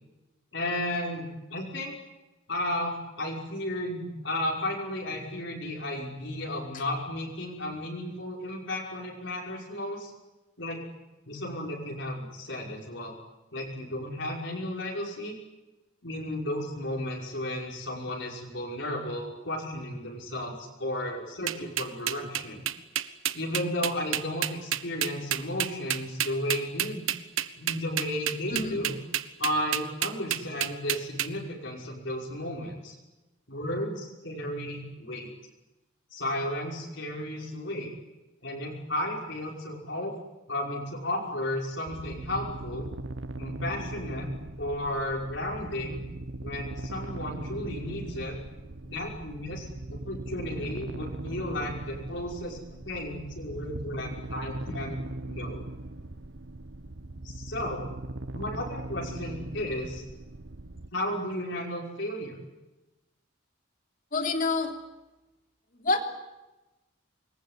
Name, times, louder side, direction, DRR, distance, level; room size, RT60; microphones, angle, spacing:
voice 1, 0.5-1.9 2.5-10.1 10.6-10.8 11.2-13.1 13.5-15.4 16.0-22.6 23.3-27.0 27.6-28.9 29.4-32.9 33.5-35.3 36.1-37.9 38.4-40.1 40.5-42.9 43.4-44.3 44.6-46.0 46.4-48.4 48.8-52.6 52.8-55.6 57.2-57.8 58.3-60.0 60.9-62.4, left 1 dB, 60° left, -2 dB, 5.7 m, -33 dB
sound 1, 21.5-31.3, right 11 dB, 80° right, 1.3 m, -29 dB
sound 2, 41.9-60.9, right 2 dB, 60° right, 1.0 m, -40 dB
voice 2, 64.1-64.8 65.8-66.0, left 3 dB, 40° left, 5 dB, 3.3 m, -27 dB
26.5 x 22.0 x 9.7 m, 1.1 s
head